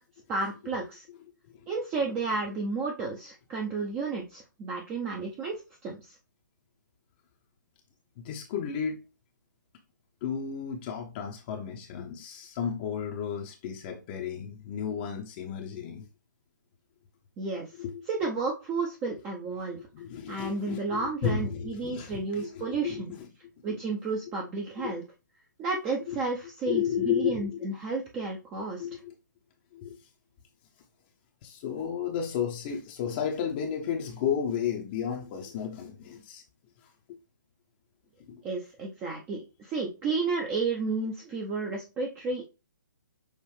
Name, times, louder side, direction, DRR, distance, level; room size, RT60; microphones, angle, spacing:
voice 1, 0.3-1.1 1.7-6.2 17.4-17.7 18.1-19.8 20.3-23.1 23.6-25.0 25.6-28.9 38.4-42.4, right 4 dB, 20° right, 0.7 m, -32 dB
voice 2, 8.2-9.0 10.2-16.1 17.8-18.0 19.9-23.3 23.7-23.8 24.8-24.9 26.1-26.2 26.6-27.7 28.8-29.1 29.7-30.0 31.4-36.4 36.8-37.2 38.3-38.4, left 8 dB, 30° left, 0.8 m, -33 dB
6.5 x 2.5 x 3.2 m
figure-of-eight pair, 135°, 10 cm